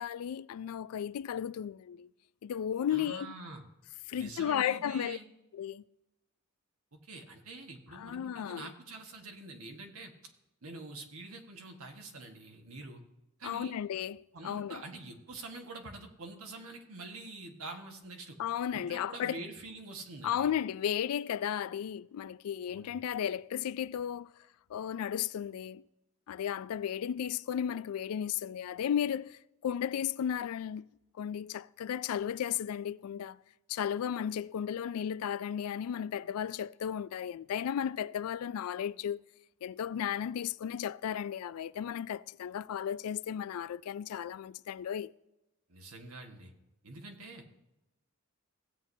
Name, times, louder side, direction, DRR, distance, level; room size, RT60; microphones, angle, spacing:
voice 1, 0.0-2.1 2.4-3.3 4.1-5.2 5.5-5.8 7.9-8.7 13.4-14.8 18.4-19.4 20.2-24.3 24.7-25.8 26.3-30.9 31.2-33.4 33.7-39.2 39.6-45.1, left 9 dB, 85° left, 0.3 m, -34 dB
voice 2, 2.9-3.6 4.1-5.3 6.9-10.1 10.6-13.0 13.4-13.8 14.3-18.4 18.7-20.5 22.7-23.0 45.7-46.5 46.8-47.4, right 2 dB, 80° right, 1.5 m, -46 dB
16.5 x 8.1 x 2.7 m
head